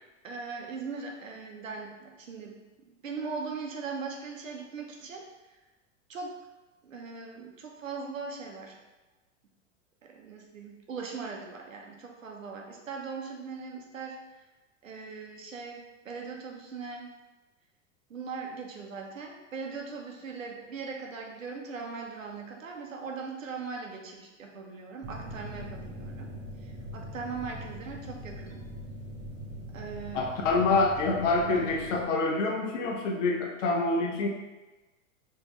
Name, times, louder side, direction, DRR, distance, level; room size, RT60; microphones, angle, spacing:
voice 1, 0.2-2.6 2.8-5.3 6.1-6.3 6.8-8.8 10.0-14.2 14.8-17.1 18.1-26.3 26.6-28.6 29.7-30.3, right 4 dB, 85° right, 0 dB, 1.0 m, -40 dB
sound 1, 25.0-32.0, equal, 30° right, 0.9 m, -42 dB
voice 2, 30.1-34.3, left 3 dB, 70° left, 1 dB, 1.0 m, -26 dB
5.0 x 3.4 x 3.1 m, 1.1 s
hypercardioid pair, 100°, 38 cm